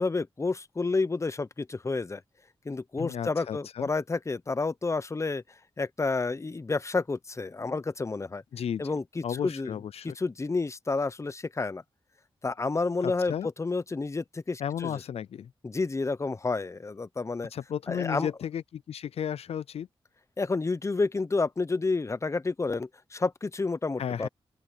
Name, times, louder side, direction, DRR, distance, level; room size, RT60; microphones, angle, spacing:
voice 1, 0.0-2.2 2.6-5.4 5.8-8.4 8.8-9.7 10.0-11.8 12.4-15.0 15.6-17.5 17.9-18.3 20.4-24.3, left 3 dB, 30° left, 0.7 m, -30 dB
voice 2, 3.0-3.9 8.5-8.8 9.2-10.2 13.0-13.5 14.6-15.5 17.5-19.9 24.0-24.3, left 9 dB, 85° left, 0.4 m, -34 dB
open air
wide cardioid pair, 85°, 10 cm